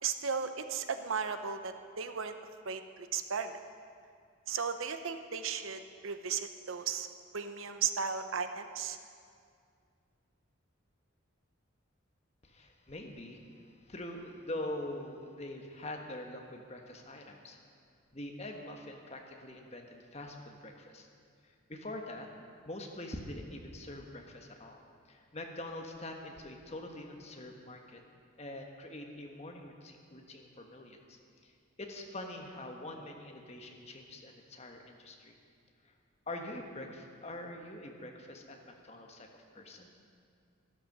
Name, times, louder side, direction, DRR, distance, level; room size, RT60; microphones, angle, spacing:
voice 1, 0.0-2.4 2.6-3.5 4.5-7.1 7.3-9.0, right 6 dB, 75° right, 9 dB, 0.8 m, -35 dB
voice 2, 12.4-17.6 18.1-21.1 21.4-22.3 22.6-24.8 25.1-28.0 28.4-31.5 31.8-35.3 35.8-35.9 36.3-39.3 39.5-39.9, left 1 dB, 30° left, 2 dB, 1.3 m, -44 dB
13.0 x 12.0 x 6.6 m, 2.2 s
head